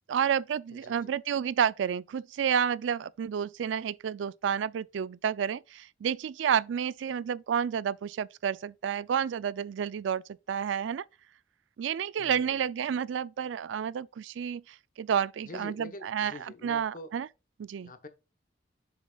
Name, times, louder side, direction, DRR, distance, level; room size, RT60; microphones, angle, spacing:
voice 1, 0.1-10.2 10.5-11.0 11.8-16.3 16.6-17.3 17.6-17.9, right 8 dB, 80° right, 0.3 m, -30 dB
voice 2, 0.7-1.1 12.2-12.6 15.4-17.1 17.8-18.1, left 2 dB, 45° left, 0.9 m, -45 dB
7.0 x 6.1 x 2.3 m
head